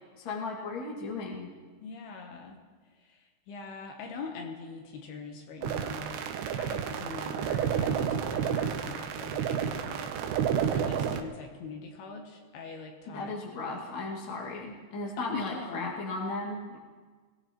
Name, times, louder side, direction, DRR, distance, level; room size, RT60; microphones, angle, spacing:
voice 1, 0.2-1.5 13.1-16.8, left 3 dB, 35° left, -3 dB, 2.1 m, -36 dB
voice 2, 1.8-2.6 3.0-6.2 6.6-13.3 15.2-15.9, left 4 dB, 75° left, 2 dB, 2.9 m, -42 dB
sound 1, 5.6-11.2, right 8 dB, 85° right, 3.1 m, -30 dB
20.5 x 17.5 x 3.1 m, 1.5 s
omnidirectional pair, 4.9 m